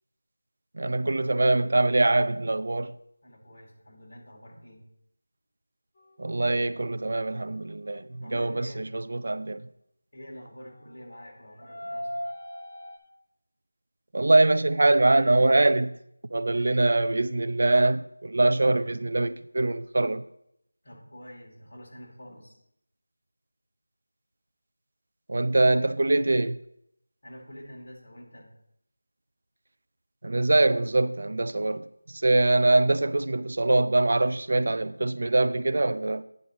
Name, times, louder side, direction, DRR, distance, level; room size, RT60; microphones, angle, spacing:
voice 1, 0.7-2.9 6.2-8.1 8.3-9.6 14.1-16.0 16.3-20.2 25.3-26.6 30.2-31.9 32.1-36.2, right 2 dB, 50° right, 0.4 m, -23 dB
voice 2, 3.2-4.9 8.2-8.9 10.1-12.2 16.5-16.7 20.8-22.6 27.2-28.5, equal, 45° left, 2.7 m, -46 dB
sound 1, 6.0-9.0 10.7-13.0, equal, 25° left, 1.8 m, -41 dB
9.4 x 3.7 x 6.0 m
figure-of-eight pair, 175°, 0 cm